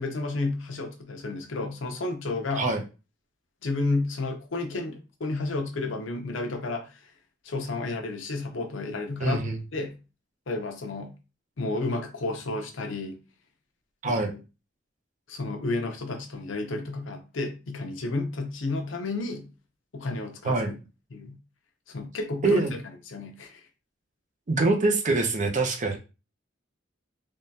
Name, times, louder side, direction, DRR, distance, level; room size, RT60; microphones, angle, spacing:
voice 1, 0.0-2.7 3.6-7.1 7.4-9.5 9.7-10.0 10.5-11.1 11.6-13.2 14.0-14.4 15.3-19.5 19.9-20.8 21.1-21.4 21.9-22.8 23.1-23.6, left 2 dB, 75° left, 0.6 m, -31 dB
voice 2, 9.2-9.6 14.0-14.3 20.4-20.7 22.4-22.7 24.5-26.0, right 3 dB, 40° right, 0.6 m, -24 dB
3.5 x 2.2 x 2.7 m
head